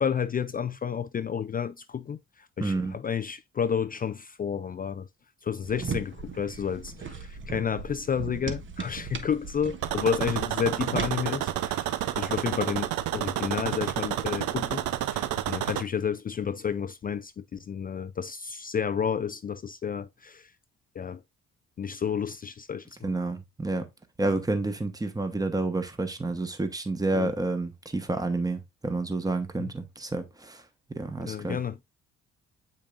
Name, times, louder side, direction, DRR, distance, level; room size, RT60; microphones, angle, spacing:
voice 1, 0.0-2.2 2.6-5.1 5.4-11.9 12.2-14.8 15.1-20.5 21.0-21.2 21.8-23.1 27.1-27.3 29.6-29.7 31.2-31.8, left 7 dB, 30° left, 0.4 m, -31 dB
voice 2, 2.6-2.9 23.0-23.9 24.2-30.6 31.0-31.6, right 2 dB, 10° right, 1.1 m, -29 dB
sound 1, 5.6-11.1, right 5 dB, 40° right, 1.1 m, -37 dB
sound 2, 9.8-15.8, right 12 dB, 90° right, 0.6 m, -30 dB
7.4 x 5.1 x 2.5 m
cardioid pair, 90°, 30 cm